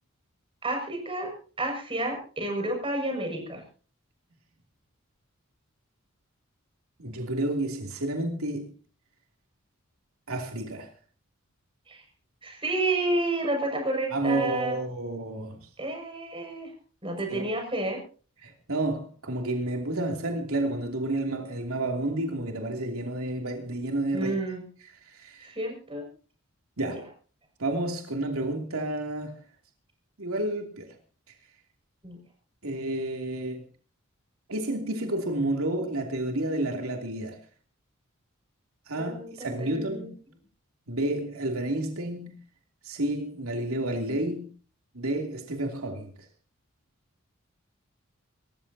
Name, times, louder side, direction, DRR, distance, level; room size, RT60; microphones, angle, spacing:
voice 1, 0.6-1.3 1.6-3.6 11.9-12.0 12.4-14.7 15.8-16.7 17.0-18.0 24.1-24.6 25.4-26.0 26.8-26.9 32.0-32.2 39.0-40.1, right 2 dB, 25° right, 6.5 m, -30 dB
voice 2, 7.0-8.7 10.3-10.9 14.1-15.7 17.3-17.5 18.4-24.3 24.8-25.5 26.8-27.0 27.6-29.3 30.2-31.0 32.6-33.6 34.5-37.4 38.9-40.1 40.9-42.4 42.8-44.5 44.9-46.1, right 1 dB, 90° right, 2.9 m, -30 dB
27.0 x 14.5 x 2.8 m
head